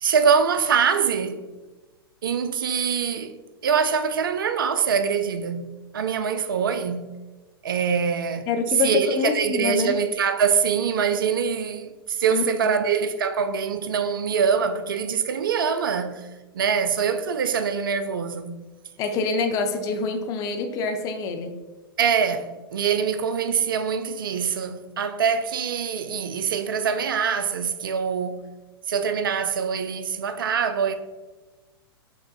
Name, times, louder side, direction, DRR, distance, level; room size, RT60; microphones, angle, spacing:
voice 1, 0.0-1.4 2.2-3.4 3.6-7.1 7.6-8.5 8.8-16.3 16.5-18.5 22.0-28.4 28.9-31.0, right 6 dB, 60° right, 0.4 m, -24 dB
voice 2, 8.5-9.9 12.3-12.8 19.0-21.6, left 5 dB, 30° left, 0.5 m, -26 dB
5.8 x 3.4 x 2.4 m
figure-of-eight pair, 100°, 13 cm